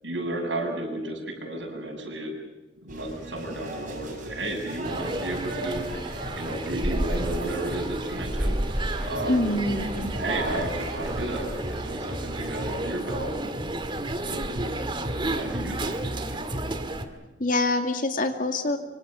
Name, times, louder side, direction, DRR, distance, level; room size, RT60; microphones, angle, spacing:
voice 1, 0.0-2.3 2.8-5.9 6.4-8.6 9.1-13.7 14.3-16.5, right 1 dB, 90° right, 2 dB, 7.6 m, -33 dB
sound 1, 2.9-12.7, right 1 dB, 45° right, 6.8 m, -39 dB
sound 2, 4.8-17.1, right 1 dB, 25° right, 1.9 m, -31 dB
voice 2, 9.3-10.1 17.4-18.8, left 2 dB, 50° left, 6 dB, 2.4 m, -25 dB
25.5 x 25.5 x 6.5 m, 1.1 s
head